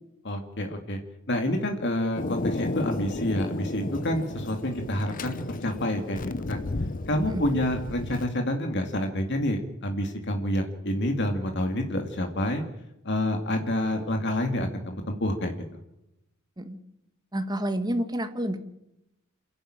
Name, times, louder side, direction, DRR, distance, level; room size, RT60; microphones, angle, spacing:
voice 1, 0.2-1.0 1.3-6.2 6.5-6.6 7.1-12.6 13.0-15.5, left 1 dB, 55° left, 4 dB, 2.3 m, -28 dB
Thunder, 2.2-8.3, left 2 dB, 40° left, 0.9 m, -33 dB
voice 2, 17.3-18.6, right 1 dB, 20° right, 8 dB, 1.7 m, -29 dB
28.5 x 11.5 x 8.9 m, 0.88 s
head